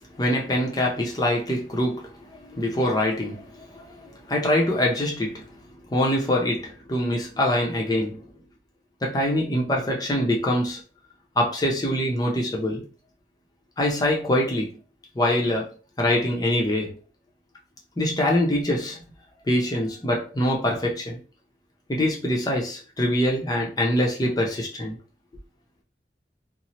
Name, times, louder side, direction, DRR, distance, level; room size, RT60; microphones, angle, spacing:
voice 1, 0.2-5.6 5.9-8.2 9.0-10.8 11.4-12.9 13.8-14.8 15.1-17.0 18.0-19.0 19.5-21.2 21.9-25.0, left 1 dB, 20° left, 0.6 m, -24 dB
2.8 x 2.0 x 3.0 m
head